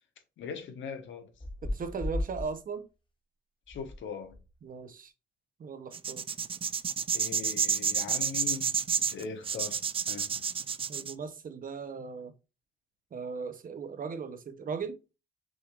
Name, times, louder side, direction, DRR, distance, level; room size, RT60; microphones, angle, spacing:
voice 1, 0.4-1.3 3.7-4.4 7.1-8.8 9.1-10.3, left 6 dB, 75° left, 1.2 m, -40 dB
sound 1, 1.3-2.5 3.7-4.0 4.2-4.5, left 1 dB, 25° left, 1.3 m, -35 dB
voice 2, 1.6-2.8 4.6-5.1 5.6-6.2 10.9-12.3 13.1-15.0, right 5 dB, 45° right, 0.8 m, -38 dB
sound 2, 5.9-11.1, right 7 dB, 30° right, 0.3 m, -30 dB
6.1 x 3.2 x 2.4 m
cardioid pair, 90°, 20 cm